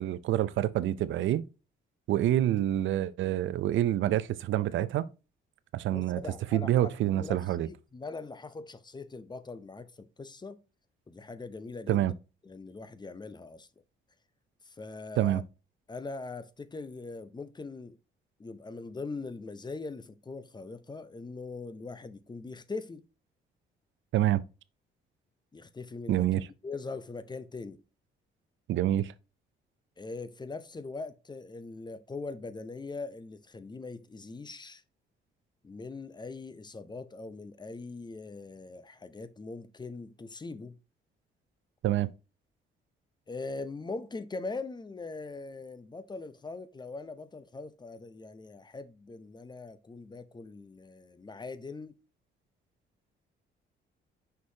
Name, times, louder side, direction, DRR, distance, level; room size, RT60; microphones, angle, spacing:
voice 1, 0.0-1.5 2.1-5.1 5.7-6.2 6.5-7.7 11.9-12.1 15.2-15.4 24.1-24.4 26.1-26.5 28.7-29.1 41.8-42.1, right 13 dB, 75° right, 0.5 m, -27 dB
voice 2, 5.9-7.4 7.7-10.6 11.1-12.1 12.4-13.7 14.6-15.4 15.9-18.0 18.4-23.1 25.5-26.3 26.6-27.8 30.0-34.8 35.6-40.8 43.3-52.0, left 3 dB, 20° left, 0.7 m, -41 dB
6.2 x 5.9 x 2.8 m
cardioid pair, 90°, 20 cm